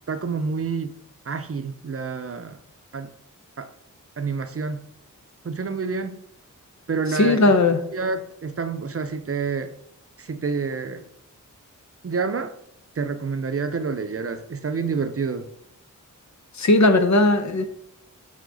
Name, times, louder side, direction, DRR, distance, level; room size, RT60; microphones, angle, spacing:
voice 1, 0.1-1.0 1.3-2.6 2.9-3.1 3.6-3.7 4.2-4.8 5.4-6.2 6.9-7.5 7.9-9.7 10.2-11.1 12.0-12.5 13.0-15.5, right 5 dB, 45° right, 9 dB, 0.6 m, -28 dB
voice 2, 7.2-7.8 16.6-17.7, left 2 dB, 60° left, 8 dB, 0.8 m, -17 dB
8.1 x 3.8 x 4.0 m, 0.77 s
wide cardioid pair, 65°, 32 cm